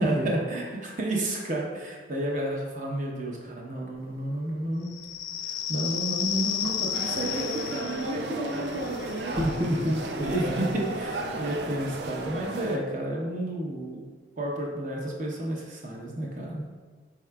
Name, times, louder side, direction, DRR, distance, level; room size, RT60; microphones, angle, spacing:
voice 1, 0.0-4.9 5.4-9.4 10.1-14.1 14.4-16.6, right 1 dB, 45° right, -1 dB, 0.8 m, -31 dB
sound 1, 3.9-12.5, equal, 90° right, 1.5 m, -48 dB
sound 2, 4.9-12.1, left 9 dB, 90° left, 0.3 m, -34 dB
sound 3, 6.9-12.8, right 3 dB, 75° right, 0.4 m, -35 dB
voice 2, 9.4-10.7, equal, 20° right, -6 dB, 0.4 m, -28 dB
4.7 x 4.6 x 2.3 m, 1.4 s
head